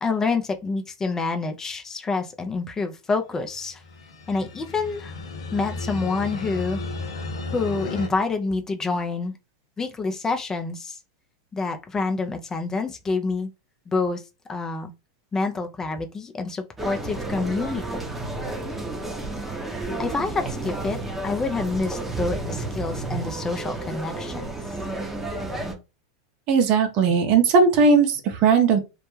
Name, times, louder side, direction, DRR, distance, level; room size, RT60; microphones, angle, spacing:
voice 1, 0.0-3.8 4.3-5.2 5.5-6.8 7.5-9.3 9.8-11.0 11.5-13.5 13.9-14.2 14.5-14.9 15.3-18.0 19.8-21.0 21.2-24.5, left 3 dB, 20° left, 0.4 m, -27 dB
sound 1, 3.6-8.1, left 3 dB, 80° left, 0.6 m, -34 dB
sound 2, 16.8-25.7, right 2 dB, 10° right, 0.7 m, -31 dB
voice 2, 26.5-28.8, right 5 dB, 45° right, 0.6 m, -18 dB
2.2 x 2.1 x 3.1 m
hypercardioid pair, 100°, 3 cm